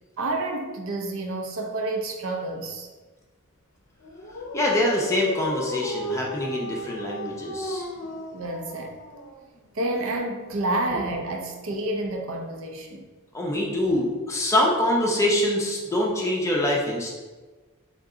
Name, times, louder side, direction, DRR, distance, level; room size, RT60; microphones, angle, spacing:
voice 1, 0.2-2.9 8.3-9.0 9.7-13.0, right 2 dB, 70° right, 2 dB, 0.6 m, -29 dB
Dog, 4.0-9.7, equal, 55° left, 0.6 m, -35 dB
voice 2, 4.5-7.9 13.3-17.1, left 1 dB, 15° left, -3 dB, 0.7 m, -24 dB
3.7 x 3.6 x 3.8 m, 1.3 s
head